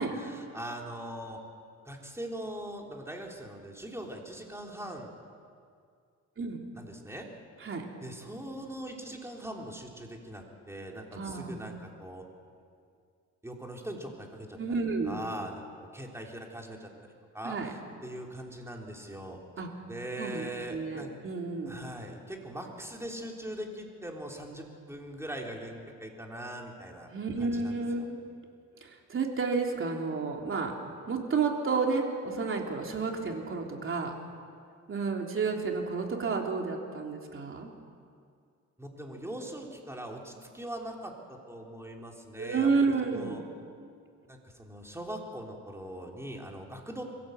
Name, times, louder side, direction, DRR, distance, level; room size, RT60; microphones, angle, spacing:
voice 1, 0.0-1.4 1.8-5.2 6.7-7.3 8.0-12.2 13.4-15.6 15.9-16.9 17.3-19.4 19.9-21.1 21.7-27.1 27.4-28.1 38.8-43.4 44.3-47.0, right 1 dB, 10° right, 0 dB, 3.6 m, -41 dB
voice 2, 11.1-11.7 14.6-15.2 17.4-17.7 19.6-19.7 20.2-21.8 27.1-28.2 28.8-30.8 31.1-34.1 34.9-37.7 42.4-43.4, right 4 dB, 45° right, 1 dB, 3.3 m, -31 dB
22.5 x 16.0 x 8.0 m, 2.3 s
cardioid pair, 90°, 30 cm